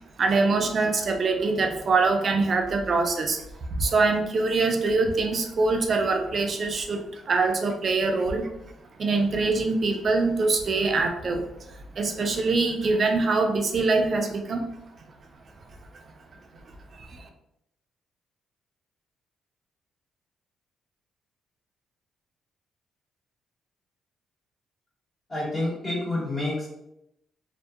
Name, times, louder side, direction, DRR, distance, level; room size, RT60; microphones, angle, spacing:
voice 1, 0.2-3.4 3.8-8.5 9.0-11.4 11.9-14.7 16.9-17.3, right 3 dB, 45° right, 4 dB, 0.4 m, -24 dB
voice 2, 25.3-26.7, left 2 dB, 35° left, -6 dB, 1.5 m, -28 dB
2.7 x 2.1 x 2.3 m, 0.81 s
cardioid pair, 90°, 0 cm